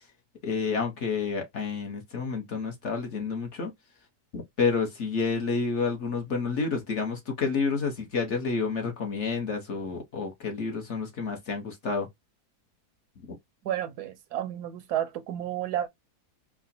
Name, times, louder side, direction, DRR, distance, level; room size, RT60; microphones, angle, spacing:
voice 1, 0.4-3.7 4.3-12.1 13.2-13.4, left 4 dB, 50° left, 1.1 m, -29 dB
voice 2, 13.6-15.9, right 11 dB, 80° right, 1.2 m, -31 dB
4.8 x 2.1 x 2.7 m
omnidirectional pair, 1.7 m